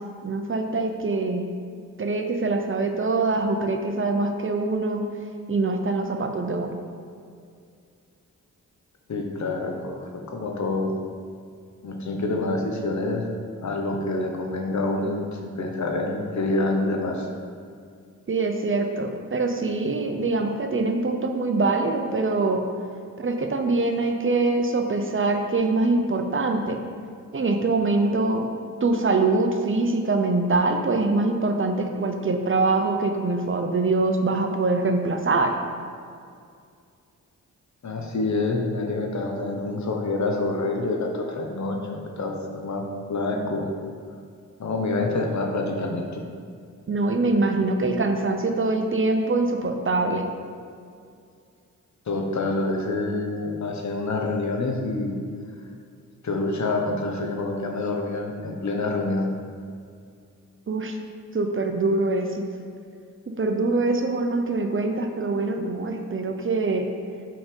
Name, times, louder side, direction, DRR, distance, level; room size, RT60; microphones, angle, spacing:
voice 1, 0.2-1.5 2.0-5.0 5.5-6.7 18.3-22.6 23.2-26.8 27.3-28.5 28.8-35.5 46.9-50.3 60.7-61.0 61.3-62.4 63.4-66.8, right 3 dB, 40° right, 4 dB, 0.8 m, -24 dB
voice 2, 9.1-11.0 11.8-13.3 13.6-17.3 37.8-43.8 44.6-46.2 52.1-55.2 56.2-59.3, left 2 dB, 60° left, 2 dB, 1.0 m, -27 dB
5.8 x 5.2 x 5.3 m, 2.3 s
cardioid pair, 65°, 32 cm